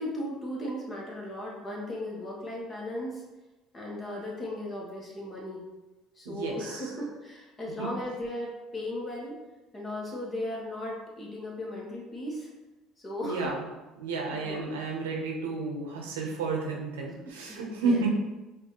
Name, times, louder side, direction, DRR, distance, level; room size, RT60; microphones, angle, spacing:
voice 1, 0.0-3.2 3.7-5.6 6.1-9.4 9.7-12.5 13.0-13.6 14.4-14.7 17.2-18.0, left 1 dB, 30° left, -3 dB, 1.5 m, -36 dB
voice 2, 6.2-6.9 7.8-7.9 13.2-13.6 14.0-18.1, right 3 dB, 90° right, -1 dB, 0.7 m, -31 dB
4.8 x 2.6 x 3.0 m, 1.1 s
hypercardioid pair, 70°, 0 cm